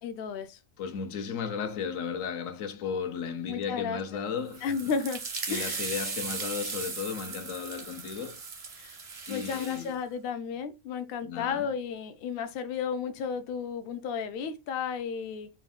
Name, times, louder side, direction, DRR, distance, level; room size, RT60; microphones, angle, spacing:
voice 1, 0.0-0.6 3.5-4.0 4.6-5.2 5.5-5.8 8.8-9.0 9.3-15.5, left 6 dB, 60° left, 0.7 m, -33 dB
voice 2, 0.8-4.8 5.5-8.4 9.3-10.0 11.2-11.7, left 6 dB, 85° left, 1.0 m, -35 dB
sound 1, 4.5-9.9, right 4 dB, 40° right, 0.5 m, -37 dB
4.3 x 2.3 x 3.5 m
omnidirectional pair, 1.4 m